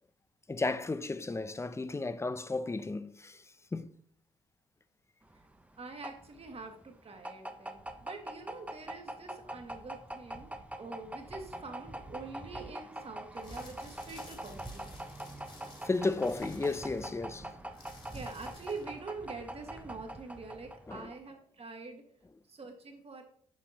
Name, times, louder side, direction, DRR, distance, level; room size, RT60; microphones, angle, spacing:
voice 1, 0.5-3.4 3.7-3.9 15.8-17.5 20.9-21.1, left 3 dB, 15° left, 0.5 m, -33 dB
sound 1, 5.3-21.3, right 1 dB, 10° right, 0.8 m, -44 dB
voice 2, 5.8-14.9 17.4-17.5 18.1-22.0 22.5-23.2, right 3 dB, 40° right, 1.6 m, -45 dB
sound 2, 13.3-19.0, left 2 dB, 35° left, 2.4 m, -54 dB
7.3 x 5.3 x 2.8 m
hypercardioid pair, 50°, 16 cm